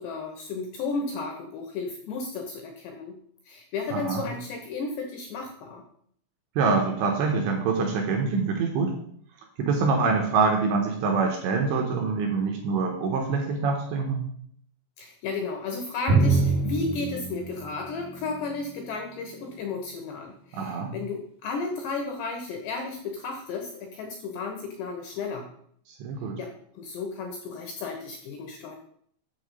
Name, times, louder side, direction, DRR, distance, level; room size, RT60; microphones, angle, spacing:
voice 1, 0.0-3.2 3.5-5.8 15.0-25.5 26.4-28.8, left 4 dB, 75° left, 3 dB, 2.6 m, -33 dB
voice 2, 3.9-4.2 6.6-8.9 9.6-14.3 20.5-20.9 26.0-26.4, right 4 dB, 75° right, 1 dB, 2.8 m, -25 dB
Drum, 16.1-19.6, right 3 dB, 20° right, 1.3 m, -26 dB
7.5 x 7.0 x 5.3 m, 0.64 s
omnidirectional pair, 6.0 m